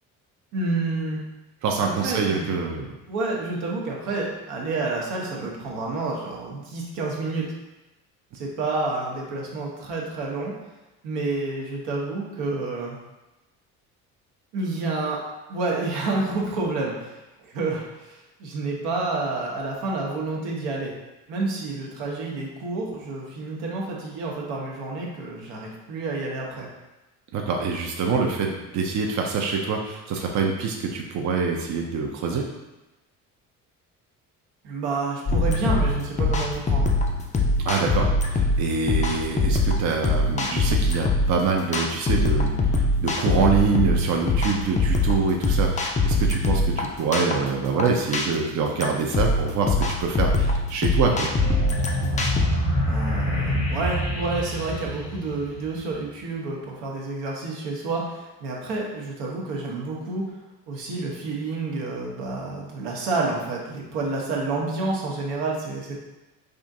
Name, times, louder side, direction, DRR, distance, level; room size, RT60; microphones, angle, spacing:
voice 1, 0.5-1.2 1.8-2.5 3.1-7.5 8.3-10.5 11.0-13.0 14.5-15.2 15.5-20.9 21.3-26.7 34.6-36.9 52.9-60.3 60.7-66.0, right 3 dB, 70° right, -2 dB, 0.9 m, -29 dB
voice 2, 1.6-2.9 27.3-32.4 37.6-51.3, right 5 dB, 40° right, 1 dB, 0.5 m, -25 dB
sound 1, 35.3-52.5, left 2 dB, 15° left, 0.4 m, -23 dB
sound 2, 51.0-55.9, equal, 85° left, 1.2 m, -27 dB
3.6 x 2.5 x 2.6 m, 1.0 s
hypercardioid pair, 60°, 45 cm